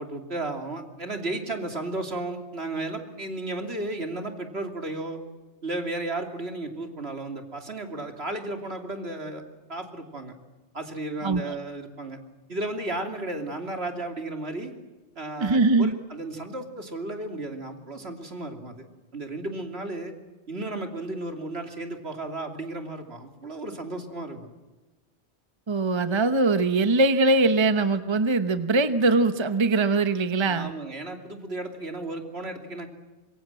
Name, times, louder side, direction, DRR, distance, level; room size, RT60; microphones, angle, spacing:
voice 1, 0.0-5.2 5.6-9.4 9.7-10.4 10.7-12.2 12.5-14.7 15.1-18.9 19.1-20.1 20.5-24.5 30.4-32.9, right 2 dB, 65° right, 4 dB, 3.2 m, -34 dB
voice 2, 15.4-15.9 25.7-30.7, right 3 dB, 25° right, 10 dB, 0.9 m, -22 dB
26.0 x 23.5 x 7.7 m, 1.2 s
omnidirectional pair, 1.2 m